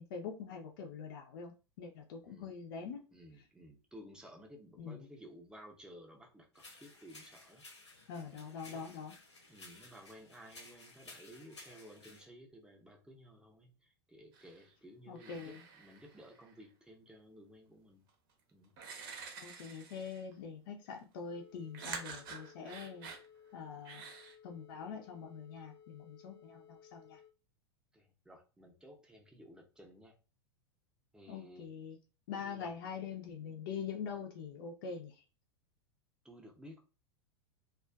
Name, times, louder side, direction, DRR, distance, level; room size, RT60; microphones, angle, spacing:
voice 1, 0.0-3.0 4.8-5.0 8.1-9.1 15.1-15.6 19.4-23.1 23.5-24.0 24.4-27.2 31.3-32.0 32.3-35.1, left 6 dB, 50° left, 3 dB, 0.5 m, -44 dB
voice 2, 2.2-2.5 3.1-7.7 8.1-8.3 8.6-8.9 9.5-18.1 18.5-18.7 27.9-30.2 31.1-31.7 32.4-32.7 36.2-36.8, equal, 5° right, 1 dB, 0.6 m, -55 dB
sound 1, 6.5-12.2, left 2 dB, 80° left, 0.8 m, -56 dB
sound 2, 14.3-14.7 15.2-16.6 18.1-18.2 18.8-20.3 21.7-23.3 23.9-24.3, right 5 dB, 50° right, 0.7 m, -48 dB
sound 3, 21.3-27.3, left 8 dB, 80° right, 0.7 m, -60 dB
2.4 x 2.3 x 2.3 m, 0.32 s
figure-of-eight pair, 90°, 14 cm